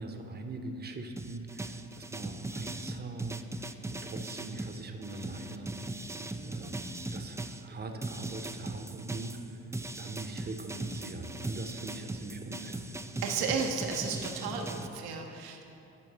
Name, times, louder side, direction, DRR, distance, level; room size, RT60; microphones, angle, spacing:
voice 1, 0.0-5.7 6.5-9.7 10.0-12.9, right 2 dB, 25° right, 5 dB, 0.9 m, -42 dB
sound 1, 1.2-7.6 8.0-14.9, right 2 dB, 10° right, 0.3 m, -39 dB
voice 2, 6.1-6.6 13.2-15.6, right 5 dB, 75° right, 3 dB, 1.0 m, -34 dB
9.9 x 4.6 x 6.1 m, 2.8 s
supercardioid pair, 60°, 38 cm